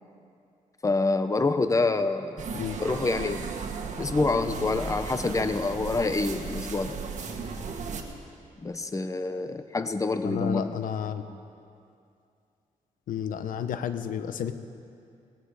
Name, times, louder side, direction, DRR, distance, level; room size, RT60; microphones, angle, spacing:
voice 1, 0.8-2.5 2.8-3.5 4.0-7.0 8.6-10.7, left 3 dB, 25° left, 10 dB, 0.9 m, -27 dB
sound 1, 2.4-8.0, right 5 dB, 60° right, 1.6 m, -35 dB
voice 2, 10.2-11.2 13.1-14.5, left 9 dB, 80° left, 10 dB, 0.7 m, -31 dB
19.0 x 14.5 x 4.9 m, 2.5 s
cardioid pair, 85°, 14 cm